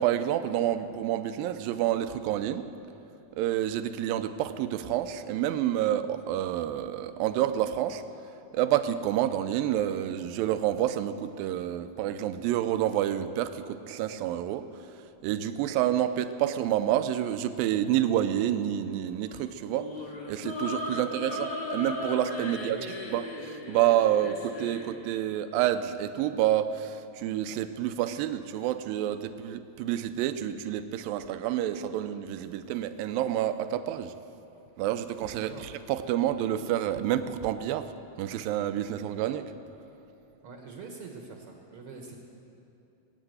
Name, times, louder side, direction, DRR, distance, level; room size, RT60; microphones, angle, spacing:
voice 1, 0.0-2.7 3.4-8.0 8.5-14.7 15.2-19.9 20.3-34.1 34.8-35.5 35.9-37.9 38.2-39.5, right 11 dB, 80° right, 10 dB, 2.3 m, -28 dB
sound 1, 19.7-24.9, left 2 dB, 40° left, 1.5 m, -36 dB
voice 2, 20.9-21.2 22.4-23.0 35.3-35.7 40.4-42.2, right 4 dB, 60° right, 2 dB, 1.6 m, -45 dB
20.0 x 9.2 x 7.9 m, 2.8 s
omnidirectional pair, 4.3 m